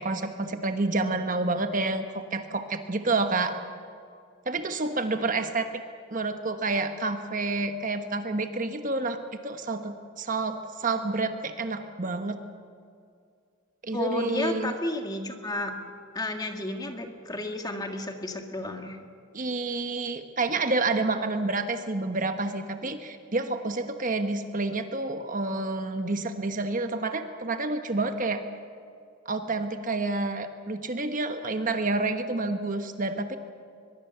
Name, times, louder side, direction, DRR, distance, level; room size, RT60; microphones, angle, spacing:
voice 1, 0.0-3.6 4.5-5.7 6.1-9.2 9.4-12.4 13.8-14.7 19.3-28.4 29.2-33.4, right 3 dB, 40° right, 7 dB, 1.2 m, -29 dB
voice 2, 13.9-15.7 16.1-19.0, left 1 dB, 20° left, 4 dB, 1.7 m, -32 dB
23.0 x 21.5 x 6.9 m, 2.3 s
head